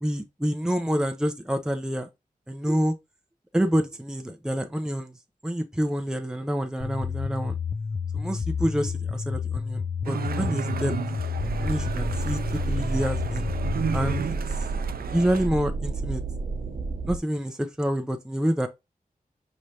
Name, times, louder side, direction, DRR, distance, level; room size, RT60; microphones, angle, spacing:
voice 1, 0.0-2.1 2.5-2.9 3.5-5.1 5.4-7.6 8.1-10.9 11.6-13.5 13.9-14.4 15.1-16.2 17.1-18.7, equal, 5° right, 0.6 m, -27 dB
sound 1, 6.8-14.2, left 5 dB, 50° left, 0.5 m, -30 dB
sound 2, 10.0-15.5, right 7 dB, 90° right, 0.4 m, -34 dB
sound 3, 11.4-17.2, right 4 dB, 60° right, 0.9 m, -31 dB
5.0 x 3.2 x 2.7 m
wide cardioid pair, 75°, 15 cm